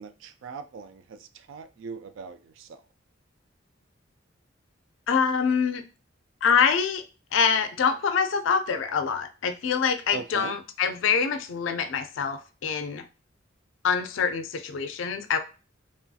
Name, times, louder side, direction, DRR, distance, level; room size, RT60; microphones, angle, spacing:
voice 1, 0.0-2.8 10.1-10.6, right 5 dB, 75° right, 0.3 m, -40 dB
voice 2, 5.1-5.8 6.4-7.0 7.3-13.0 13.8-15.4, left 6 dB, 75° left, 0.4 m, -25 dB
2.9 x 2.3 x 2.6 m
head